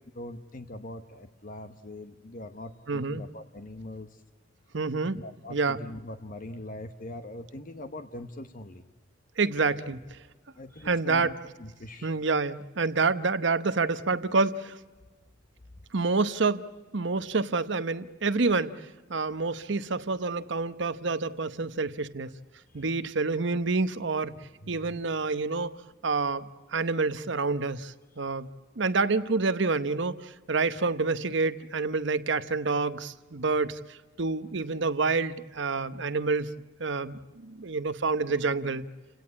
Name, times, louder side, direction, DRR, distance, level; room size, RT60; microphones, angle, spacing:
voice 1, 0.1-4.2 5.1-8.8 9.8-10.0 10.6-12.2 22.7-22.8 24.6-25.0, left 1 dB, 45° left, 8 dB, 1.0 m, -42 dB
voice 2, 2.9-3.2 4.7-5.2 5.5-5.8 9.4-10.0 10.8-11.3 12.0-14.8 15.9-16.7 16.9-18.8 19.1-22.3 22.7-24.4 24.7-25.8 26.0-28.5 28.8-36.5 36.8-38.9, right 4 dB, 65° right, 13 dB, 0.9 m, -28 dB
30.0 x 17.5 x 8.4 m, 1.3 s
head